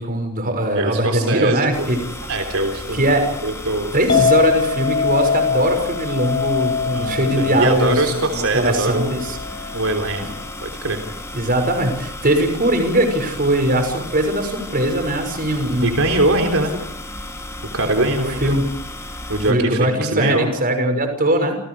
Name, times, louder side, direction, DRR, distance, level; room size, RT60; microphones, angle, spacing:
voice 1, 0.0-2.0 2.9-3.5 3.9-9.4 11.3-15.9 18.1-18.6 19.4-21.6, right 1 dB, 40° right, 6 dB, 6.2 m, -20 dB
voice 2, 0.7-1.9 2.3-3.0 3.4-4.0 6.9-9.1 9.7-11.0 15.8-16.8 17.7-18.5 19.3-20.5, right 2 dB, 75° right, 3 dB, 3.6 m, -22 dB
sound 1, 1.7-19.5, left 1 dB, 15° left, 3.9 m, -34 dB
Chink clink, 4.1-10.4, left 6 dB, 50° left, 7.9 m, -23 dB
29.5 x 29.0 x 4.9 m, 0.72 s
head